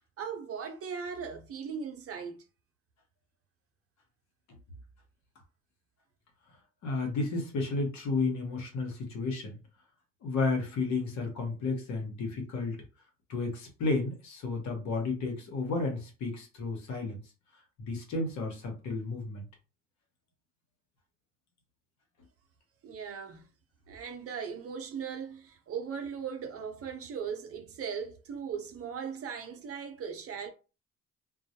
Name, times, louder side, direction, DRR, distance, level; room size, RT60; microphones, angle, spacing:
voice 1, 0.2-2.4 22.8-23.5 23.9-30.5, right 6 dB, 50° right, 0.6 m, -38 dB
voice 2, 6.8-9.6 10.2-12.8 13.3-17.2 17.8-19.5, left 3 dB, 65° left, 0.9 m, -32 dB
2.2 x 2.0 x 2.8 m
cardioid pair, 90°, 30 cm